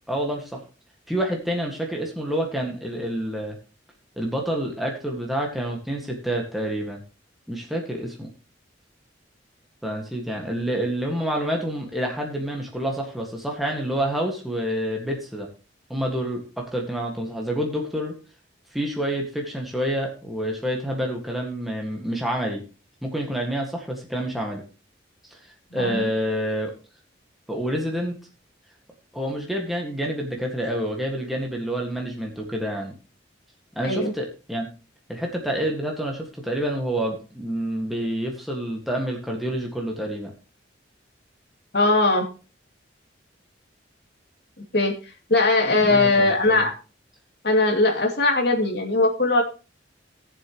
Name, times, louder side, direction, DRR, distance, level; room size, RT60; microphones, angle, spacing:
voice 1, 0.1-0.6 1.1-3.6 4.2-7.0 7.5-8.3 9.8-15.5 15.9-18.1 18.7-22.6 23.0-24.6 25.3-26.7 27.5-28.1 29.1-32.9 33.8-34.7 35.1-40.3 45.6-46.6, equal, ahead, 0 dB, 1.8 m, -28 dB
voice 2, 25.7-26.0 33.8-34.1 41.7-42.3 44.7-44.9 45.3-46.7 47.4-49.4, left 2 dB, 60° left, 2 dB, 2.5 m, -20 dB
18.0 x 7.4 x 3.1 m, 0.33 s
head